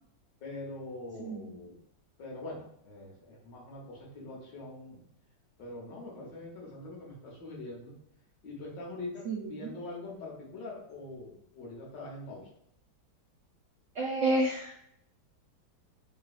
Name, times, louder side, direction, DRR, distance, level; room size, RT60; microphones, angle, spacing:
voice 1, 0.4-1.8 2.2-5.0 5.6-7.9 8.4-12.4, left 2 dB, 70° left, -3 dB, 1.8 m, -43 dB
voice 2, 1.2-1.5 9.3-9.7 14.0-14.7, right 2 dB, 75° right, -3 dB, 0.6 m, -30 dB
3.9 x 3.1 x 2.4 m, 0.75 s
omnidirectional pair, 2.0 m